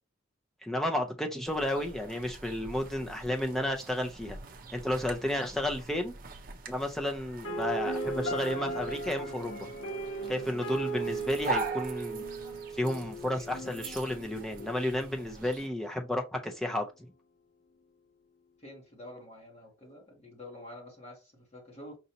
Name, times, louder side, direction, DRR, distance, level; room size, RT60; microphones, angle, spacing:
voice 1, 0.6-4.4 4.7-6.1 6.7-9.7 10.3-12.2 12.7-16.8, left 1 dB, ahead, 0.6 m, -32 dB
sound 1, 1.4-15.7, right 3 dB, 45° right, 0.6 m, -43 dB
sound 2, 7.4-15.4, right 2 dB, 85° left, 1.2 m, -37 dB
voice 2, 18.6-22.0, left 1 dB, 35° left, 1.4 m, -48 dB
5.2 x 2.7 x 2.8 m
head